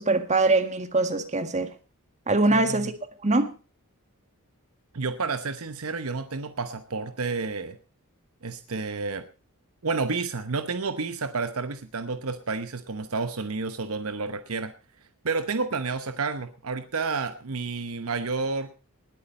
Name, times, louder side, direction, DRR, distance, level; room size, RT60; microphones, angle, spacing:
voice 1, 0.0-1.7 2.3-2.9 3.2-3.5, right 2 dB, 30° right, 1.7 m, -23 dB
voice 2, 2.5-2.9 4.9-7.8 8.4-9.2 9.8-14.7 15.2-18.7, right 4 dB, 70° right, 1.0 m, -30 dB
19.5 x 8.6 x 5.3 m
head